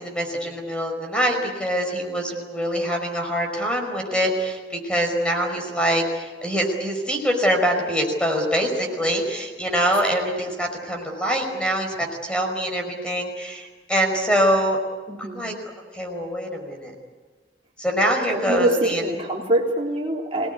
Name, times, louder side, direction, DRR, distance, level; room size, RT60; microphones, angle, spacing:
voice 1, 0.0-14.8 15.3-15.5 15.9-16.9 17.8-19.0, equal, 5° left, 2 dB, 5.2 m, -24 dB
voice 2, 15.1-15.5 18.3-20.5, right 1 dB, 35° right, -2 dB, 3.6 m, -24 dB
26.0 x 19.0 x 9.6 m, 1.3 s
head